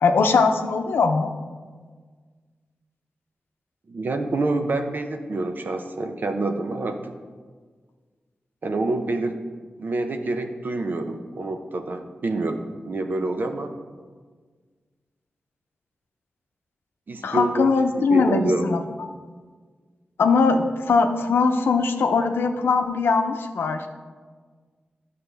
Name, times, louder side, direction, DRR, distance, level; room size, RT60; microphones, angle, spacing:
voice 1, 0.0-1.3 17.2-18.8 20.2-23.8, left 4 dB, 90° left, 6 dB, 0.6 m, -21 dB
voice 2, 3.9-7.1 8.6-9.4 9.8-13.7 17.1-17.7 18.1-18.7, right 2 dB, 60° right, 6 dB, 0.8 m, -27 dB
11.0 x 6.8 x 3.4 m, 1.5 s
cardioid pair, 60°, 4 cm